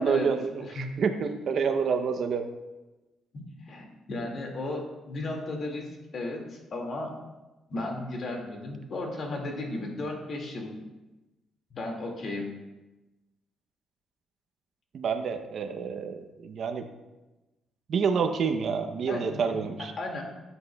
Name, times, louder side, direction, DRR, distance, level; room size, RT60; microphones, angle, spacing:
voice 1, 0.0-2.4 14.9-16.8 17.9-19.9, right 6 dB, 60° right, 6 dB, 0.7 m, -28 dB
voice 2, 0.6-0.9 3.3-5.9 6.1-7.2 7.7-10.8 11.7-12.5 19.1-19.6 20.0-20.2, left 2 dB, 50° left, 1 dB, 2.1 m, -35 dB
13.0 x 8.1 x 2.3 m, 1.1 s
cardioid pair, 90°, 0 cm